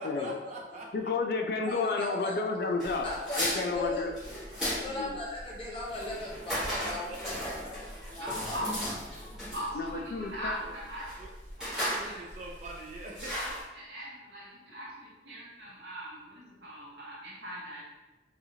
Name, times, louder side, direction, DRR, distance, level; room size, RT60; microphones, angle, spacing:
voice 1, 0.0-1.1 3.2-3.3 3.7-3.8 6.8-7.7 8.1-8.2 10.5-10.7 11.2-11.3 11.8-13.3, right 2 dB, 40° right, -1 dB, 0.3 m, -44 dB
voice 2, 0.9-3.1 3.4-4.1 4.8-5.2 9.7-10.6, left 4 dB, 55° left, 3 dB, 0.3 m, -31 dB
voice 3, 1.6-2.4 3.0-4.1 4.6-8.6, left 2 dB, 30° left, -5 dB, 0.7 m, -38 dB
sound 1, 2.8-13.6, equal, 5° right, 1.0 m, -36 dB
voice 4, 8.2-11.1 11.6-12.3 13.3-17.8, equal, 75° right, -5 dB, 0.9 m, -41 dB
2.8 x 2.3 x 2.7 m, 1.1 s
head